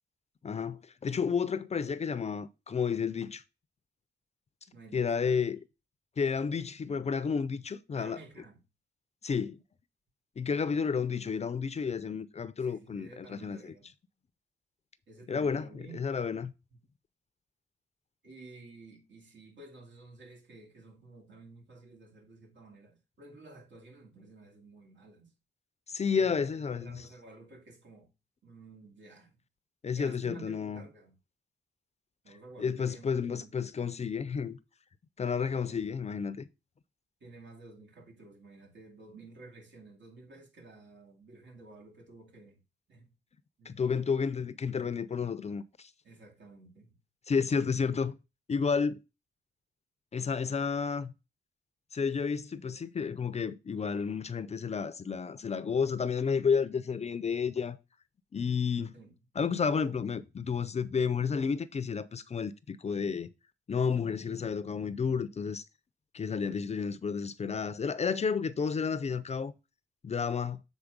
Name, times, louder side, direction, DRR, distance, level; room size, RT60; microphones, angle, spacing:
voice 1, 0.4-3.4 4.9-5.6 6.2-8.2 9.2-9.6 10.4-13.7 15.3-15.7 15.9-16.5 25.9-27.1 29.8-30.8 32.6-34.6 35.2-36.5 43.7-45.9 47.3-48.2 48.5-49.0 50.1-51.1 51.9-57.8 58.3-59.0 59.4-63.3 63.7-65.6 66.1-69.5 70.0-70.6, left 6 dB, 35° left, 0.4 m, -31 dB
voice 2, 4.7-5.4 7.9-8.6 12.6-13.9 15.1-16.1 16.7-16.8 18.2-25.3 26.1-28.1 28.4-29.4 30.0-31.1 32.2-33.9 35.7-35.8 37.2-42.6 42.9-43.1 43.6-43.8 46.0-47.0 58.9-59.1, right 3 dB, 80° right, 2.4 m, -52 dB
7.1 x 4.2 x 5.1 m
wide cardioid pair, 150°, 19 cm